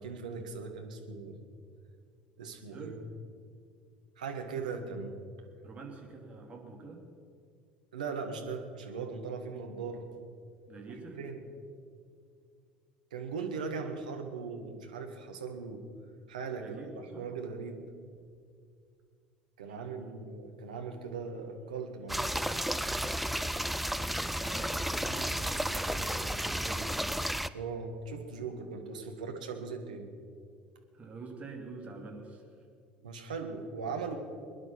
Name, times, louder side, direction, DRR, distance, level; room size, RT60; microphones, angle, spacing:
voice 1, 0.0-1.4 2.4-3.0 4.2-5.2 7.9-10.2 11.2-11.4 13.1-15.8 16.3-16.8 17.2-17.8 19.6-22.4 27.5-30.1 33.0-34.2, right 5 dB, 70° right, 4 dB, 1.6 m, -39 dB
voice 2, 5.6-7.0 10.7-11.2 16.6-17.3 19.8-20.0 24.2-27.0 30.9-32.5, right 3 dB, 30° right, 1 dB, 3.0 m, -46 dB
sound 1, 22.1-27.5, equal, ahead, 0.5 m, -32 dB
21.5 x 11.0 x 5.9 m, 2.2 s
figure-of-eight pair, 65°, 4 cm